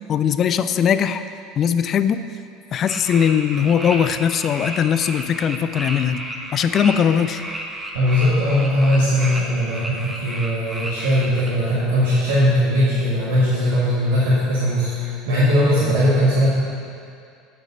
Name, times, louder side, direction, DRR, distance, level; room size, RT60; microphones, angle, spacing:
voice 1, 0.1-1.2 1.6-2.2 2.7-6.3 6.5-7.4, left 8 dB, 40° left, 11 dB, 0.5 m, -20 dB
sound 1, 2.9-11.6, right 1 dB, 10° right, 1.4 m, -32 dB
voice 2, 7.9-16.5, equal, 65° right, -9 dB, 2.0 m, -19 dB
9.0 x 8.0 x 5.5 m, 2.4 s
figure-of-eight pair, 70°, 0 cm